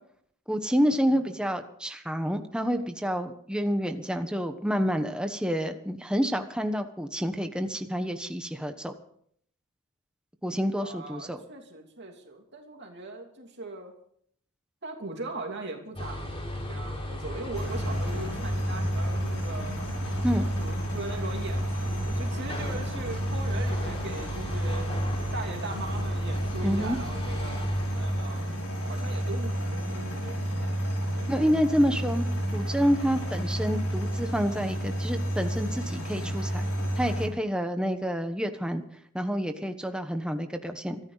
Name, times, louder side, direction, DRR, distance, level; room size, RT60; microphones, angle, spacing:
voice 1, 0.5-8.9 10.4-11.4 20.2-20.5 26.6-27.0 31.3-32.3 32.5-36.7 37.0-38.8 39.1-41.0, equal, 5° right, 6 dB, 1.1 m, -28 dB
voice 2, 10.8-13.9 14.8-19.8 20.6-24.9 25.3-28.6 28.9-30.8 31.1-31.5 33.1-33.2, right 2 dB, 50° right, 1 dB, 2.8 m, -40 dB
sound 1, 15.9-28.5, left 1 dB, 25° left, 3.3 m, -36 dB
sound 2, 17.5-37.3, equal, 75° left, 5.8 m, -31 dB
24.0 x 14.0 x 4.1 m, 0.66 s
head